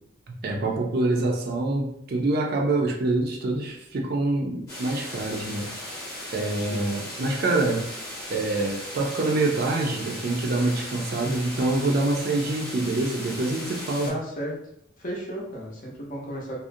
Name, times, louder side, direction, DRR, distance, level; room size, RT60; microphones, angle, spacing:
voice 1, 0.3-5.7 6.3-7.9 8.3-14.1, right 2 dB, 50° right, 0 dB, 0.4 m, -26 dB
sound 1, 4.7-14.1, left 1 dB, 15° left, 0.8 m, -37 dB
voice 2, 6.6-6.9 14.0-14.6 15.0-16.6, equal, 40° left, -2 dB, 0.6 m, -34 dB
2.4 x 2.0 x 2.6 m, 0.74 s
head